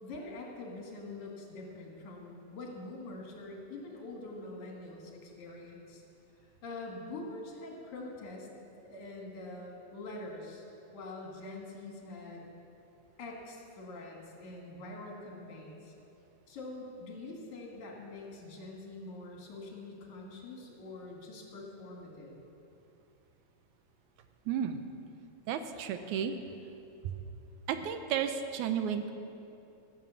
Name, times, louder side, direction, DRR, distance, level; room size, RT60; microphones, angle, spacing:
voice 1, 0.0-6.0 6.4-8.5 8.8-10.7 10.9-12.4 13.2-15.9 16.5-22.4, left 2 dB, 75° left, -1 dB, 3.2 m, -45 dB
voice 2, 24.5-24.8 25.5-26.4 27.7-29.1, right 8 dB, 80° right, 8 dB, 2.0 m, -32 dB
14.5 x 7.3 x 7.0 m, 2.8 s
omnidirectional pair, 3.5 m